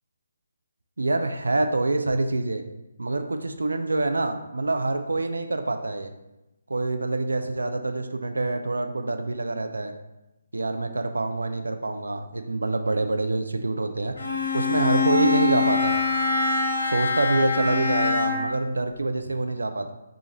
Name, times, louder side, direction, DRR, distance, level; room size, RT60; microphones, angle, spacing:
voice 1, 1.0-2.6 3.0-6.1 6.7-9.9 10.5-14.2 14.5-16.0 16.8-19.9, right 2 dB, 80° right, 7 dB, 0.4 m, -26 dB
Bowed string instrument, 14.2-18.6, left 4 dB, 65° left, 0.8 m, -24 dB
4.8 x 2.5 x 3.0 m, 0.96 s
figure-of-eight pair, 150°, 0 cm